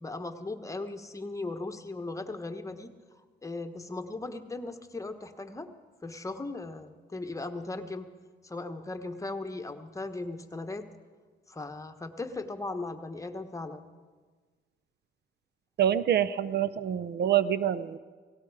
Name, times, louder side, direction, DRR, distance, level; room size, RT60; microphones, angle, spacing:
voice 1, 0.0-2.9 3.4-5.7 6.0-8.1 8.4-10.9 11.5-13.8, left 2 dB, 15° left, 7 dB, 1.2 m, -37 dB
voice 2, 15.8-18.0, right 10 dB, 60° right, 15 dB, 0.6 m, -26 dB
17.5 x 17.0 x 4.8 m, 1.5 s
cardioid pair, 90°, 20 cm